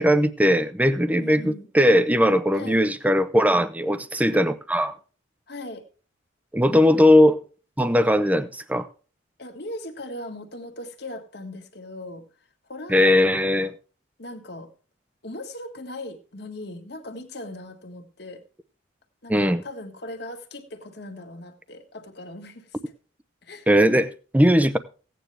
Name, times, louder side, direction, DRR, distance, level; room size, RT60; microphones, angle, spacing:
voice 1, 0.0-5.0 6.5-7.4 7.8-8.9 12.9-13.7 19.3-19.6 23.7-24.8, equal, 10° right, 0.7 m, -19 dB
voice 2, 1.2-1.7 2.5-2.8 5.5-5.8 9.4-12.3 12.7-13.7 14.2-14.7 15.2-18.4 19.2-22.8 23.4-23.7, left 1 dB, 55° left, 1.8 m, -39 dB
16.5 x 9.3 x 3.3 m
head